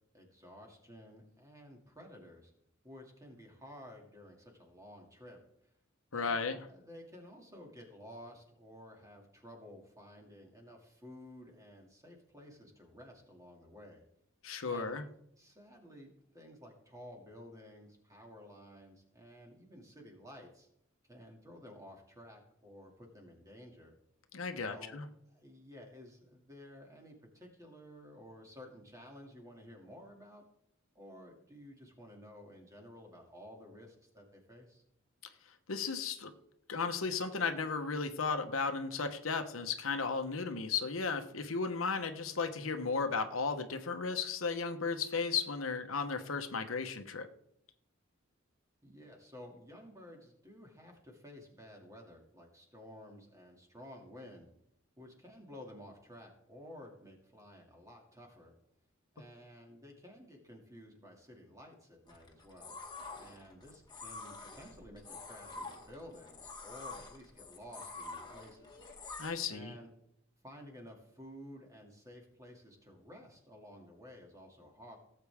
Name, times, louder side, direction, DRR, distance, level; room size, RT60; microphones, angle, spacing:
voice 1, 0.1-2.5 2.8-5.4 6.1-14.0 14.7-15.0 15.4-20.7 21.1-23.9 24.6-25.0 25.3-30.4 30.9-34.8 48.8-54.5 55.0-58.5 59.1-62.7 63.1-68.8 69.5-69.9 70.4-75.0, equal, 15° right, 1 dB, 2.5 m, -53 dB
voice 2, 6.1-6.6 14.4-15.0 24.3-25.0 35.7-36.3 36.7-47.3 69.2-69.7, left 5 dB, 85° left, 7 dB, 1.1 m, -35 dB
sound 1, 62.1-69.3, left 3 dB, 20° left, 1.8 m, -47 dB
17.5 x 7.9 x 3.6 m, 0.75 s
head